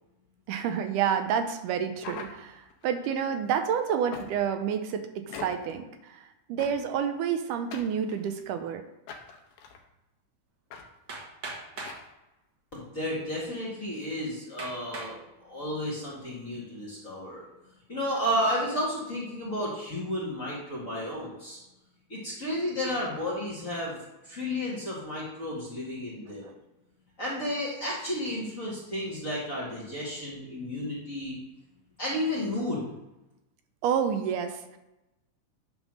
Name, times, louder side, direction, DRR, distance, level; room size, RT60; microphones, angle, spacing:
voice 1, 0.5-8.8 33.8-34.8, right 8 dB, 85° right, 7 dB, 2.2 m, -29 dB
sound 1, 2.0-2.9 4.1-4.6 5.3-5.8 6.6-7.0 7.7-8.5 9.1-9.8 10.7-10.8 11.1-11.2 11.8-12.1, left 6 dB, 80° left, 2.4 m, -43 dB
Hammer, 11.1-12.0 12.9-13.0 13.6-13.7 14.6-15.2 15.8-16.2, right 3 dB, 50° right, 1.6 m, -40 dB
voice 2, 12.7-17.5 17.9-21.6 22.1-24.0 24.2-26.5 27.2-31.4 32.0-32.9, left 1 dB, 30° left, -7 dB, 1.8 m, -32 dB
9.1 x 3.5 x 6.1 m, 0.97 s
omnidirectional pair, 3.7 m